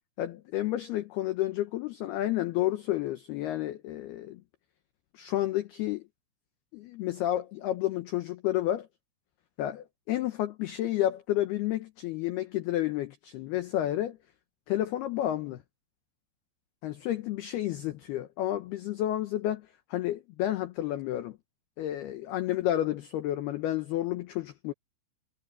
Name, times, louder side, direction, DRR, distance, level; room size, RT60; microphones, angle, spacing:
voice 1, 0.2-4.4 5.1-6.0 6.7-8.9 9.6-14.2 14.7-15.6 16.8-19.6 19.9-21.4 21.8-24.7, left 13 dB, 90° left, 2.2 m, -30 dB
omnidirectional pair, 6.0 m